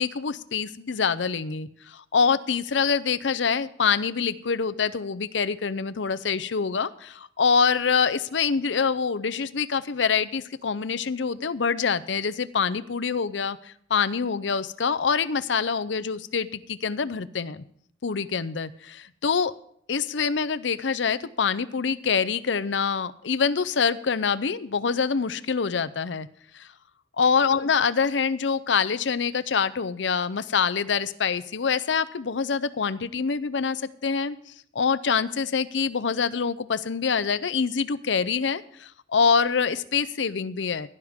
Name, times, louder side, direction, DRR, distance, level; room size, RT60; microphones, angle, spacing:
voice 1, 0.0-17.6 18.0-19.5 19.9-26.3 26.5-26.7 27.2-40.9, left 5 dB, 85° left, 14 dB, 0.6 m, -25 dB
16.5 x 12.0 x 3.6 m, 0.65 s
head